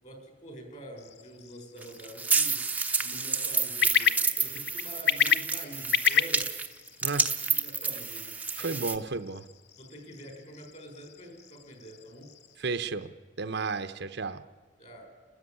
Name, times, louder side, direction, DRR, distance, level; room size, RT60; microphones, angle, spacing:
voice 1, 0.0-2.7 3.0-6.6 7.4-9.0 9.8-12.3 14.8-15.1, right 1 dB, 35° left, 5 dB, 4.4 m, -46 dB
sound 1, 1.0-12.6, left 8 dB, 55° left, 0.8 m, -33 dB
sound 2, 1.8-9.0, right 4 dB, 10° right, 0.8 m, -29 dB
voice 2, 7.0-7.3 8.6-9.4 12.6-14.4, right 4 dB, 55° right, 10 dB, 0.8 m, -33 dB
29.5 x 13.5 x 9.8 m, 1.4 s
head